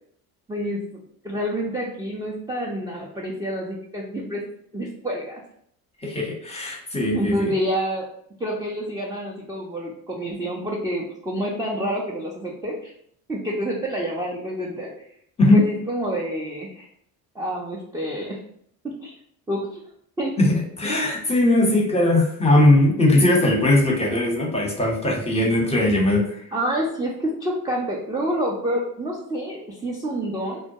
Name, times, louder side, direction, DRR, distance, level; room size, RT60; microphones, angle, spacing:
voice 1, 0.5-0.8 1.2-4.4 4.7-5.4 7.1-8.1 8.4-12.9 13.3-14.9 15.5-16.9 17.3-18.4 19.0-19.1 19.5-19.8 20.2-20.4 26.5-30.6, equal, 10° right, -3 dB, 0.4 m, -28 dB
voice 2, 6.0-7.5 15.4-15.6 20.4-26.4, left 1 dB, 15° left, -1 dB, 0.8 m, -19 dB
2.2 x 2.2 x 2.7 m, 0.66 s
hypercardioid pair, 60°, 47 cm